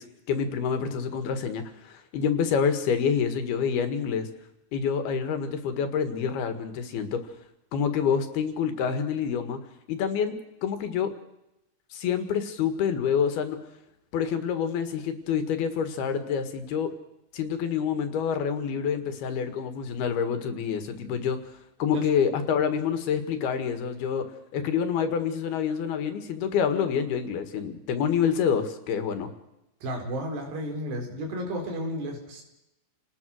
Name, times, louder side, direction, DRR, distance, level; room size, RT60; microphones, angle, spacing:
voice 1, 0.0-4.3 4.7-7.3 7.7-9.6 9.9-11.1 11.9-13.6 14.1-16.9 17.3-21.4 21.8-24.3 24.5-29.3, left 7 dB, 75° left, 9 dB, 3.7 m, -27 dB
voice 2, 29.8-32.4, equal, 85° right, 3 dB, 6.5 m, -33 dB
29.5 x 19.0 x 6.5 m, 0.90 s
omnidirectional pair, 4.7 m